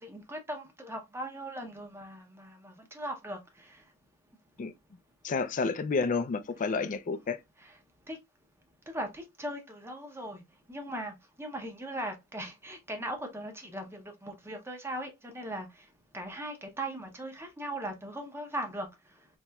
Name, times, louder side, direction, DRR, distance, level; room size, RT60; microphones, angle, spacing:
voice 1, 0.0-3.8 7.6-7.7 8.1-8.2 8.9-10.4 10.7-15.7 16.1-18.9, right 1 dB, 10° right, 0.7 m, -39 dB
voice 2, 5.2-7.4, left 4 dB, 35° left, 0.4 m, -30 dB
4.2 x 3.0 x 2.2 m
head